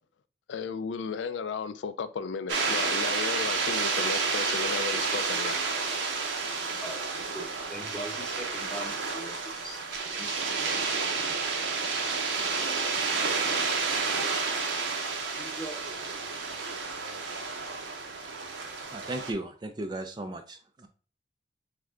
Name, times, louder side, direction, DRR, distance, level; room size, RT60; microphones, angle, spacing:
voice 1, 0.5-5.6, left 6 dB, 80° left, 0.4 m, -34 dB
sound 1, 2.5-19.3, right 4 dB, 80° right, 0.8 m, -30 dB
voice 2, 7.3-9.8 10.1-10.3 15.2-16.1, right 1 dB, 5° left, 0.9 m, -41 dB
voice 3, 18.9-20.9, right 2 dB, 25° right, 0.3 m, -36 dB
3.6 x 3.2 x 3.6 m
head